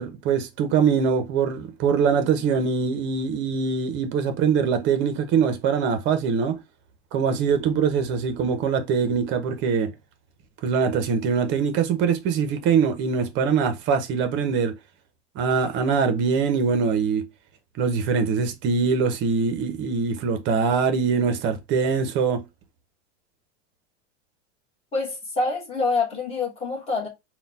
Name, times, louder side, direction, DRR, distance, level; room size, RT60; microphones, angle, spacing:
voice 1, 0.0-6.6 7.1-9.9 10.6-14.7 15.4-17.2 17.8-22.4, right 6 dB, 30° right, 0.7 m, -23 dB
voice 2, 24.9-27.1, left 3 dB, 15° left, 1.2 m, -26 dB
4.0 x 2.3 x 4.0 m
supercardioid pair, 160°, 35 cm